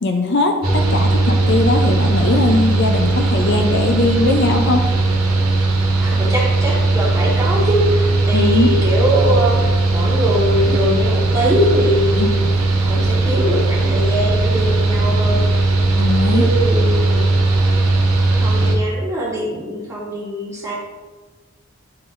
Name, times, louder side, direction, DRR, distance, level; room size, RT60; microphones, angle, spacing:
voice 1, 0.0-4.8 8.3-8.7 12.2-12.3 15.9-16.5, left 2 dB, 50° left, 3 dB, 0.5 m, -19 dB
Mechanical fan, 0.6-18.8, right 2 dB, 85° right, 1.2 m, -17 dB
voice 2, 6.0-15.7 16.3-17.3 18.3-20.7, equal, 15° right, -5 dB, 1.4 m, -22 dB
9.5 x 3.9 x 2.5 m, 1.3 s
head